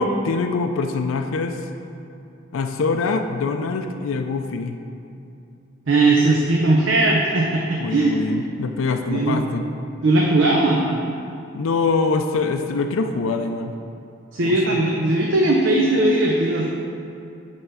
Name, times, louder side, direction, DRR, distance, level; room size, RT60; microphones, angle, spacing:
voice 1, 0.0-1.6 2.5-4.8 7.8-9.6 11.5-13.7 14.4-14.8, left 4 dB, 85° left, 6 dB, 0.4 m, -24 dB
voice 2, 5.9-8.1 9.1-9.4 10.0-11.0 14.3-16.6, right 2 dB, 65° right, -1 dB, 0.6 m, -18 dB
8.9 x 3.5 x 5.5 m, 2.6 s
head